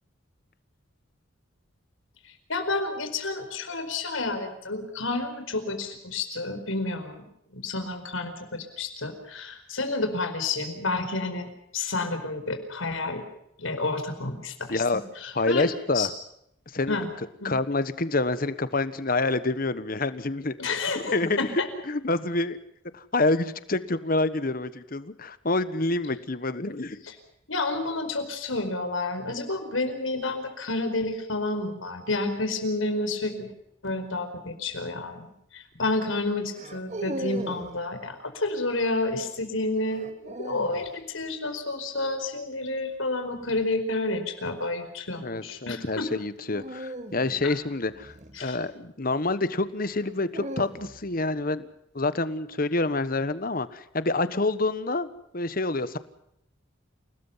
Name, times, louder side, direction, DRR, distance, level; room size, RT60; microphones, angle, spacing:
voice 1, 2.5-7.2 7.5-11.5 11.7-13.2 13.6-14.8 15.2-15.7 15.9-16.1 16.9-17.1 17.4-17.5 20.6-21.7 27.5-33.5 33.8-46.1 47.4-47.5 48.3-48.6, left 2 dB, 85° left, 8 dB, 4.7 m, -30 dB
voice 2, 14.7-15.0 15.3-16.1 16.7-20.5 20.9-22.6 22.9-27.0 44.4-44.5 45.2-51.7 51.9-55.1 55.3-56.0, left 2 dB, 45° left, 14 dB, 1.3 m, -27 dB
sound 1, 34.7-35.0 36.5-37.8 39.9-40.9 43.3-43.7 46.5-48.9 49.9-51.2, right 1 dB, 35° right, 2.1 m, -39 dB
29.0 x 19.5 x 5.8 m, 0.74 s
head